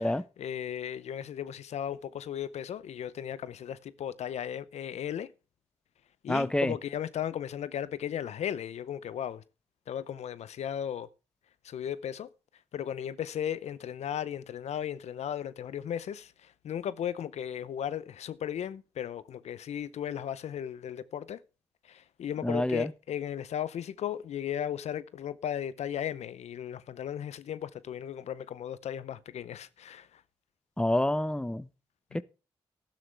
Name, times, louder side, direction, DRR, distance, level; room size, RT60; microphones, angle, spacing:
voice 1, 0.0-5.3 6.2-9.4 9.9-11.1 11.6-12.3 12.7-21.4 21.8-30.2, left 9 dB, 80° left, 0.6 m, -36 dB
voice 2, 6.3-6.8 22.4-22.9 30.8-31.7 32.1-32.2, left 1 dB, 10° left, 0.8 m, -27 dB
12.0 x 11.5 x 3.4 m
supercardioid pair, 40°, 11 cm